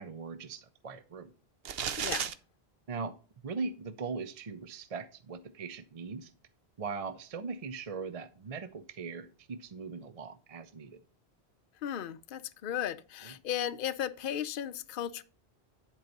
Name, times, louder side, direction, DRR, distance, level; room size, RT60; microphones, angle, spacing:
voice 1, 0.0-1.3 2.9-3.2 3.4-6.3 6.8-11.0 13.2-13.3, right 4 dB, 40° right, 0.6 m, -40 dB
sound 1, 1.7-2.3, right 8 dB, 70° right, 0.9 m, -33 dB
voice 2, 2.0-2.3 11.8-15.2, left 10 dB, 60° left, 0.7 m, -35 dB
10.5 x 4.7 x 5.3 m
omnidirectional pair, 1.1 m